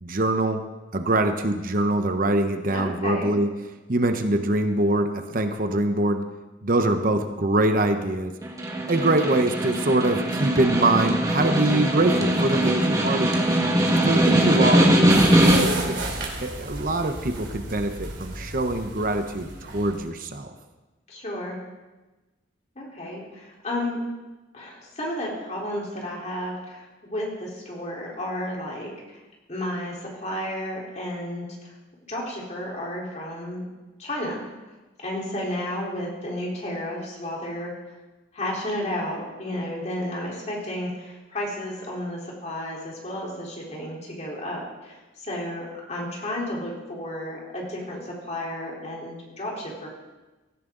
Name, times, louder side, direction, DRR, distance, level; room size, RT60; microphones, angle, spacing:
voice 1, 0.0-0.7 0.9-3.5 3.9-6.2 6.6-8.4 8.9-16.0 16.4-20.5, right 2 dB, 50° right, 7 dB, 1.0 m, -24 dB
voice 2, 2.7-3.3 21.1-21.6 22.8-24.0 24.5-29.2 29.5-31.7 32.1-33.7 34.0-34.4 35.0-37.7 38.3-49.9, left 1 dB, 40° left, -3 dB, 4.0 m, -32 dB
Snare drum, 8.4-15.9, right 1 dB, 20° right, 2.0 m, -21 dB
sound 1, 15.1-20.1, right 2 dB, 80° right, 3.2 m, -33 dB
17.0 x 15.0 x 4.0 m, 1.2 s
head